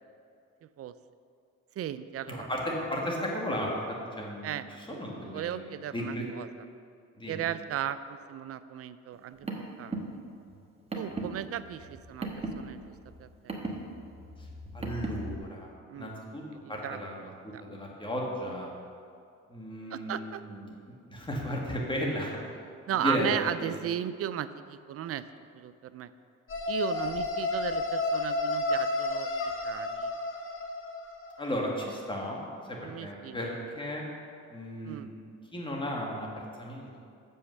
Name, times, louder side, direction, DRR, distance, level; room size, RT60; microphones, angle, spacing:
voice 1, 1.8-2.5 4.4-5.0 5.3-6.6 7.3-10.0 10.9-12.9 13.2-13.5 15.9-16.1 16.6-17.0 17.5-17.8 19.9-20.4 22.9-25.2 25.5-26.1 26.7-29.3 29.6-30.1 32.8-33.4 34.8-35.1, right 10 dB, 50° right, 14 dB, 0.4 m, -36 dB
voice 2, 2.3-3.7 4.2-6.3 7.2-7.4 14.4-14.5 14.7-15.7 16.0-16.4 16.7-17.3 17.6-18.7 19.5-20.7 21.1-22.4 23.0-23.8 31.4-33.5 33.8-34.0 34.5-35.1 35.5-37.0, equal, 15° left, -2 dB, 1.8 m, -34 dB
Car, 9.1-15.4, right 2 dB, 20° right, 1.2 m, -38 dB
sound 1, 26.5-31.4, left 2 dB, 45° left, 1.0 m, -31 dB
7.0 x 5.6 x 6.4 m, 2.4 s
cardioid pair, 90°, 30 cm